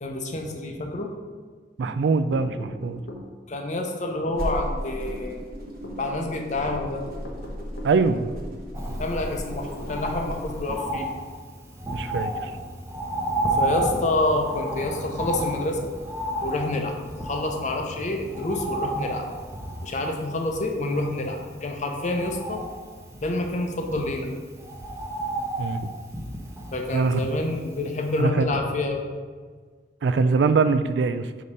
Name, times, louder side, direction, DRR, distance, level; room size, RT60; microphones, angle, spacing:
voice 1, 0.0-1.1 3.5-5.4 6.0-7.0 9.0-11.1 13.6-15.8 16.4-19.2 19.8-22.6 23.2-24.3 26.7-29.0, left 2 dB, 45° left, 2 dB, 0.7 m, -28 dB
voice 2, 1.8-3.0 7.8-8.3 11.9-12.5 25.6-25.9 26.9-27.3 28.2-28.5 30.0-31.3, right 4 dB, 75° right, 12 dB, 0.3 m, -23 dB
sound 1, 2.3-3.3 4.3-4.5 5.1-5.2 5.8-6.0 7.2-8.0 9.2-10.1, left 2 dB, 90° left, 1.1 m, -40 dB
sound 2, 4.3-10.8, equal, 55° right, 1.1 m, -35 dB
Bird, 8.7-27.9 28.2-28.3, right 1 dB, 15° right, 0.8 m, -32 dB
4.9 x 4.1 x 5.4 m, 1.5 s
head